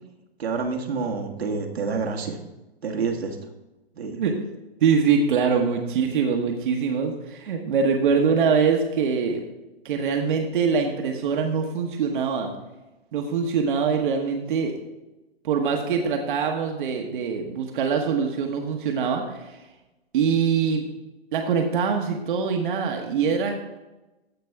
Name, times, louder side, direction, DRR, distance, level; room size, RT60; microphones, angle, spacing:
voice 1, 0.4-2.4 2.8-3.4 3.9-4.2, right 4 dB, 80° right, 2 dB, 1.6 m, -28 dB
voice 2, 4.8-9.4 9.8-12.5 13.1-14.7 15.4-19.6 20.1-20.9 21.3-23.5, right 6 dB, 55° right, 3 dB, 1.2 m, -23 dB
15.0 x 5.2 x 3.5 m, 1.0 s
hypercardioid pair, 135°, 31 cm